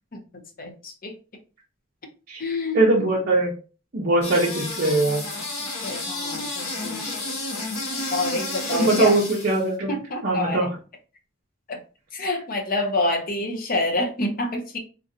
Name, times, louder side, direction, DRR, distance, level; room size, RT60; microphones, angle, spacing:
voice 1, 0.6-1.1 2.4-3.0 5.6-7.0 7.9-9.2 9.9-10.7 11.7-11.8 12.1-14.8, left 2 dB, 40° left, 3 dB, 0.6 m, -28 dB
voice 2, 2.7-3.5 3.9-5.2 8.7-9.9 10.2-10.7, right 2 dB, 45° right, -5 dB, 0.6 m, -21 dB
sound 1, 4.2-9.6, left 2 dB, 80° left, 1.1 m, -31 dB
3.1 x 2.5 x 2.6 m, 0.35 s
head